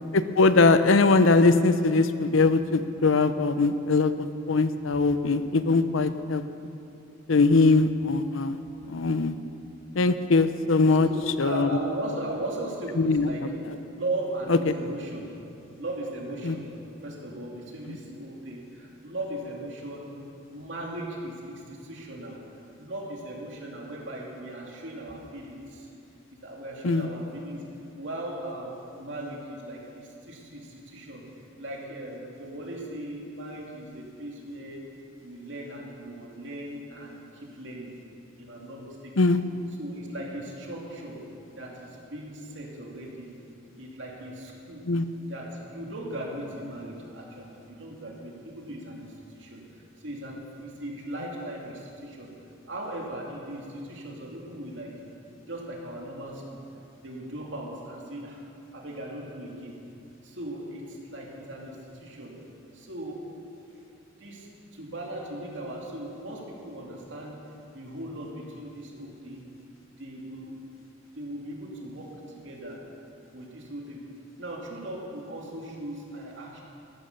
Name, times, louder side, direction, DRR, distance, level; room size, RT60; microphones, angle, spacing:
voice 1, 0.1-6.4 7.3-8.6 8.9-9.3 9.9-11.1 11.4-11.7 13.0-13.3 14.5-14.6 16.4-16.6 26.8-27.1 39.2-39.4 44.9-45.0, left 3 dB, 90° left, 11 dB, 0.7 m, -21 dB
voice 2, 11.0-13.4 14.0-15.3 15.8-16.6 17.0-20.2 20.5-25.9 26.3-27.6 28.0-34.8 35.2-37.9 38.4-39.4 39.8-41.2 41.6-43.3 43.7-44.8 45.3-52.3 52.7-54.9 55.5-56.6 57.0-58.4 58.7-59.8 60.2-62.3 62.7-63.2 64.2-67.4 67.7-69.5 70.0-70.5 71.1-72.1 72.3-72.8 73.3-74.0 74.4-76.6, right 1 dB, 65° right, -2 dB, 2.8 m, -38 dB
14.0 x 11.5 x 6.7 m, 2.7 s
head